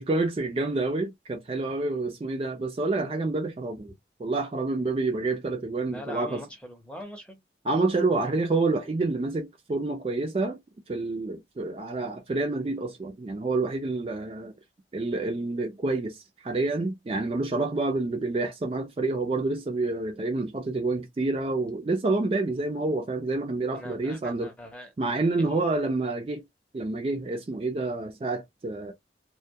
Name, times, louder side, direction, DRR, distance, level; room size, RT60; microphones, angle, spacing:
voice 1, 0.0-3.9 4.2-6.4 7.6-10.6 10.9-14.5 14.9-24.5 25.0-26.4 26.7-28.9, right 3 dB, 30° right, 0.3 m, -28 dB
voice 2, 5.8-7.4 23.7-24.9 25.4-25.6, left 1 dB, 5° left, 0.6 m, -42 dB
2.2 x 2.1 x 2.6 m
head